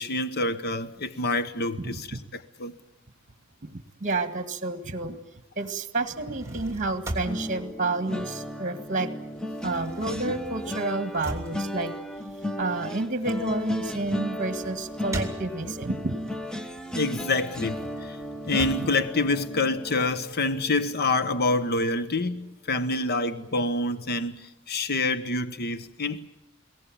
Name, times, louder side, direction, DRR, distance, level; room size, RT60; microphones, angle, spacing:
voice 1, 0.0-2.2 2.6-2.7 16.9-18.2 18.5-26.3, left 2 dB, 50° left, 0.9 m, -27 dB
voice 2, 1.8-2.2 3.6-5.2 5.6-9.1 9.6-12.0 12.4-16.2, right 2 dB, 40° right, 1.8 m, -30 dB
sound 1, 6.1-8.9 9.2-16.0 16.4-20.0, right 1 dB, 15° right, 2.9 m, -40 dB
sound 2, 7.2-22.4 22.8-23.0 23.3-23.5, left 1 dB, 5° left, 0.9 m, -35 dB
21.5 x 18.0 x 8.9 m
head